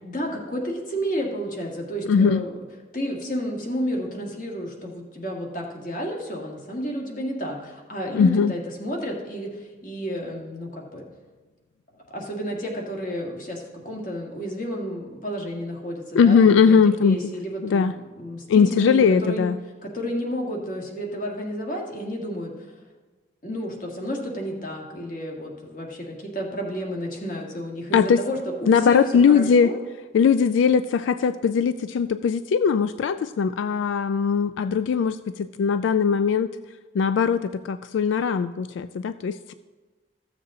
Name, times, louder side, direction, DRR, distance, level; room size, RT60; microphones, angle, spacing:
voice 1, 0.0-2.6 2.9-11.0 12.1-17.9 18.2-19.5 19.8-22.5 23.4-29.8, equal, 45° left, 0 dB, 1.7 m, -31 dB
voice 2, 2.1-2.4 8.1-8.5 16.1-17.2 17.6-17.9 18.5-19.6 27.9-28.2 28.7-29.7 30.1-36.5 37.0-39.5, left 6 dB, 85° left, 13 dB, 0.3 m, -20 dB
14.5 x 7.2 x 3.7 m, 1.3 s
head